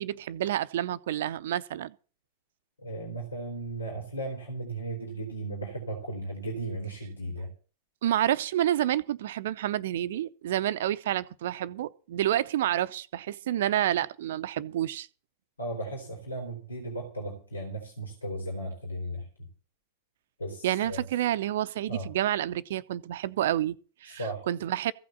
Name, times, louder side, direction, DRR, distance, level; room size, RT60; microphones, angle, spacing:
voice 1, 0.0-1.9 8.0-15.1 20.6-24.9, right 12 dB, 55° right, 0.6 m, -29 dB
voice 2, 2.8-7.5 15.6-19.5 20.4-21.0 21.9-22.1 24.1-24.4, right 2 dB, 75° left, 3.3 m, -36 dB
15.5 x 5.9 x 8.5 m
figure-of-eight pair, 90°, 0 cm